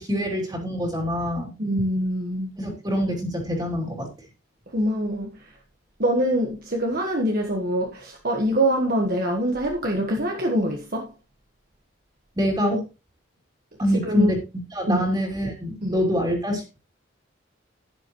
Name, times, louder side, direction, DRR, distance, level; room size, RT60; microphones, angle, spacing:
voice 1, 0.0-1.5 2.6-4.1 12.4-12.8 13.8-14.4 14.7-16.8, equal, 20° right, 2.9 m, -25 dB
voice 2, 1.6-2.5 4.7-5.3 6.0-11.1 13.9-14.3 14.9-15.0 15.8-16.0, right 1 dB, 45° right, 1.4 m, -24 dB
11.5 x 10.0 x 3.0 m
head